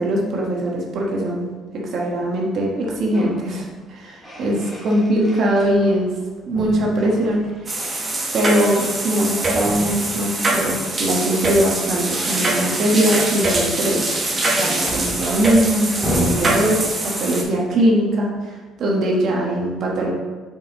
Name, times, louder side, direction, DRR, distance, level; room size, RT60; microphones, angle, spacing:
voice 1, 0.0-1.5 1.8-6.1 6.5-7.8 8.3-14.0 14.6-20.1, right 1 dB, 50° right, -2 dB, 1.4 m, -21 dB
sound 1, 2.8-3.4 3.8-6.2 6.5-7.8 9.5-11.2 13.2-17.4, left 1 dB, ahead, 2.1 m, -32 dB
sound 2, 7.7-17.4, right 2 dB, 20° right, 1.2 m, -23 dB
5.7 x 5.5 x 4.2 m, 1.3 s
cardioid pair, 150°, 0 cm